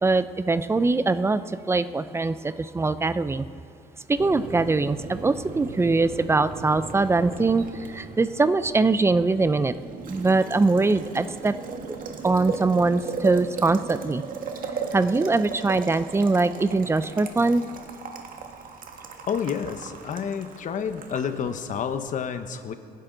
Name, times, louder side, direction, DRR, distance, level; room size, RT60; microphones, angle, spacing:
voice 1, 0.0-1.4 1.7-3.5 4.1-7.6 7.9-9.7 10.1-11.5 12.2-14.2 14.9-17.6, right 3 dB, 15° right, 13 dB, 0.5 m, -22 dB
Boiling, 4.2-22.1, right 5 dB, 55° right, 1.6 m, -37 dB
voice 2, 19.3-22.7, left 7 dB, 50° left, 9 dB, 1.0 m, -29 dB
25.5 x 10.5 x 3.9 m, 2.6 s
cardioid pair, 110°, 17 cm